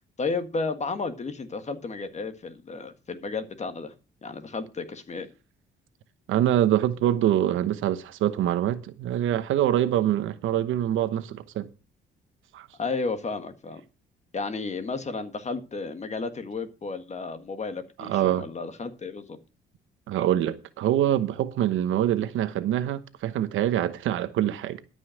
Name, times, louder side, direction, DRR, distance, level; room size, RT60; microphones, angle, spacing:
voice 1, 0.2-3.9 4.2-5.3 12.8-13.8 14.3-19.4, left 4 dB, 35° left, 1.6 m, -33 dB
voice 2, 6.3-11.7 12.5-12.7 18.0-18.5 20.1-24.8, right 11 dB, 80° right, 1.0 m, -25 dB
13.0 x 5.6 x 6.4 m
cardioid pair, 90°, 20 cm